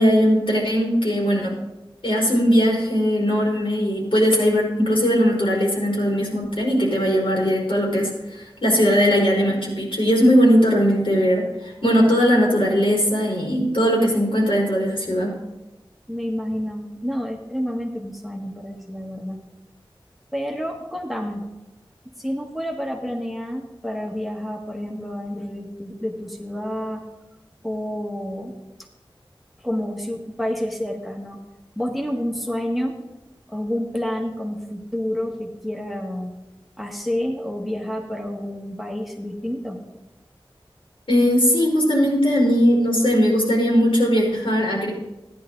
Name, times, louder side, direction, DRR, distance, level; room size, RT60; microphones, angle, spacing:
voice 1, 0.0-1.6 2.0-15.3 41.1-44.9, equal, 75° left, -4 dB, 4.8 m, -19 dB
voice 2, 16.1-19.4 20.3-21.5 22.2-27.0 27.6-28.6 29.6-31.4 31.8-33.0 33.5-36.3 36.8-39.8, equal, ahead, 0 dB, 1.7 m, -29 dB
14.5 x 10.5 x 3.9 m, 1.0 s
wide cardioid pair, 45°, 9 cm